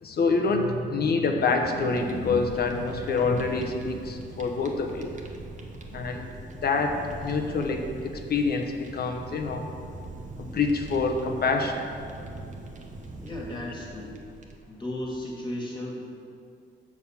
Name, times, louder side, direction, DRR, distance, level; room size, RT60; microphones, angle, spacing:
voice 1, 0.0-5.1 5.9-6.3 6.6-9.6 10.4-11.9, left 4 dB, 50° left, 4 dB, 0.9 m, -26 dB
Fire, 1.4-14.8, right 2 dB, 40° right, 1.1 m, -42 dB
voice 2, 13.2-14.1 14.7-16.0, left 1 dB, 20° left, -3 dB, 2.0 m, -35 dB
7.3 x 6.3 x 5.7 m, 2.5 s
cardioid pair, 90°, 20 cm